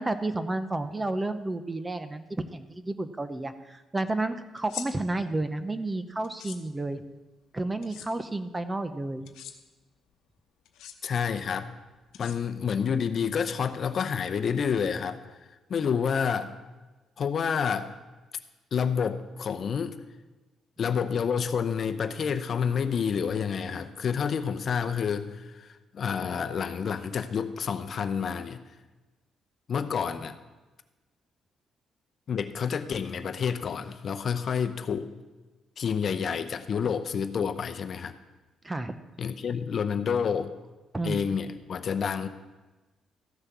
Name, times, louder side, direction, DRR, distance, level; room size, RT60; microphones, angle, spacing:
voice 1, 0.0-7.0 7.5-9.3 38.6-39.0 40.9-41.3, right 2 dB, 20° right, 10 dB, 0.8 m, -31 dB
sound 1, 4.6-4.9 6.2-6.6 7.8-8.1 9.2-9.5 10.6-10.9 12.1-12.7, left 10 dB, 90° left, 0.9 m, -41 dB
voice 2, 11.0-11.7 12.2-15.2 15.7-16.5 17.2-17.9 18.7-20.0 20.8-28.6 29.7-30.4 32.3-35.1 35.8-38.1 39.2-40.5 41.0-42.3, left 6 dB, 55° left, 9 dB, 0.7 m, -29 dB
14.0 x 6.4 x 6.0 m, 1.2 s
cardioid pair, 90°, 0 cm